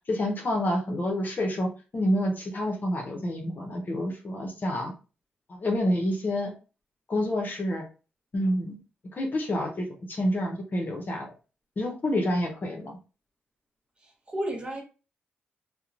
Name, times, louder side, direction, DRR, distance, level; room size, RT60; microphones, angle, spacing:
voice 1, 0.1-4.9 5.5-6.5 7.1-7.8 8.3-8.8 9.1-11.3 11.8-13.0, left 1 dB, 50° left, 0.8 m, -28 dB
voice 2, 14.0-14.8, right 1 dB, 25° right, 1.4 m, -33 dB
2.8 x 2.2 x 2.5 m
supercardioid pair, 55°, 4 cm